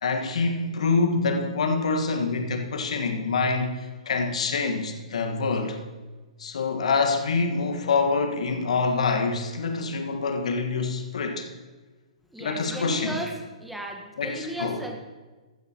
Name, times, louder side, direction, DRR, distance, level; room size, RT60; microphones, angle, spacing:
voice 1, 0.0-5.8 6.4-11.5 12.4-13.2 14.2-14.8, left 4 dB, 60° left, 1.6 m, -26 dB
voice 2, 12.3-15.0, right 1 dB, ahead, 1.3 m, -35 dB
15.5 x 12.5 x 3.0 m
figure-of-eight pair, 120°, 4 cm